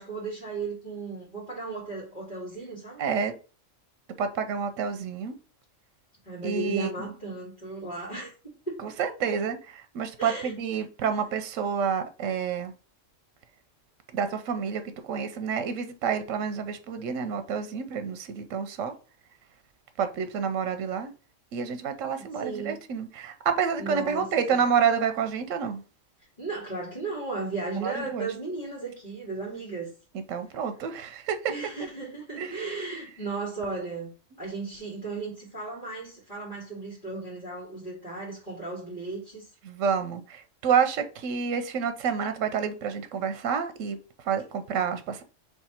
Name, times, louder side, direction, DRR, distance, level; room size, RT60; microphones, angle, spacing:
voice 1, 0.0-3.0 6.2-8.3 8.7-8.8 10.2-10.5 22.4-22.8 23.8-24.6 26.4-29.9 31.5-34.1 34.4-39.5, right 3 dB, 35° left, 1.9 m, -35 dB
voice 2, 3.0-3.3 4.2-5.3 6.4-6.9 8.8-12.7 14.1-18.9 20.0-21.1 21.5-25.8 27.8-28.3 30.3-31.5 32.4-33.0 39.6-45.2, right 7 dB, 85° right, 1.0 m, -29 dB
3.6 x 3.3 x 4.3 m
omnidirectional pair, 1.3 m